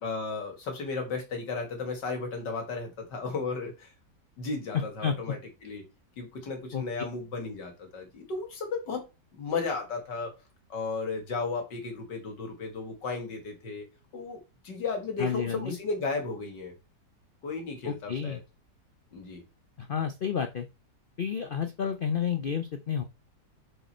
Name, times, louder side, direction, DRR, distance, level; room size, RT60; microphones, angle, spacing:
voice 1, 0.0-3.9 4.4-5.8 6.2-9.1 9.3-10.4 10.7-13.9 14.1-16.8 17.4-18.4 19.1-19.4, left 4 dB, 85° left, 2.7 m, -34 dB
voice 2, 5.0-5.3 6.7-6.8 15.2-15.8 17.8-18.4 19.8-20.7 21.2-23.0, left 7 dB, 65° left, 0.5 m, -30 dB
6.5 x 5.1 x 4.4 m
omnidirectional pair, 1.9 m